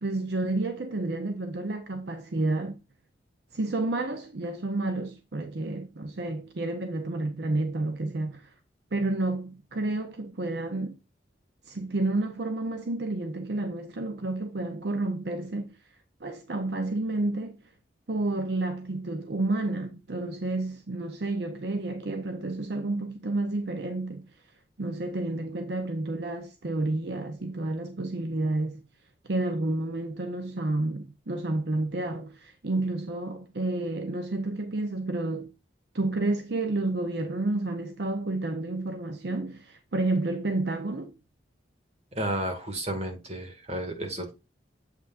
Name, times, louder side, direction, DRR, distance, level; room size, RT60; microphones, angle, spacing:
voice 1, 0.0-2.8 3.5-8.5 8.9-11.0 11.7-15.7 16.2-17.6 18.1-24.3 24.8-28.8 29.3-35.5 35.9-41.1, right 2 dB, 65° right, 0.8 m, -30 dB
voice 2, 42.1-44.3, right 1 dB, 35° right, 2.0 m, -32 dB
8.0 x 5.8 x 2.5 m
head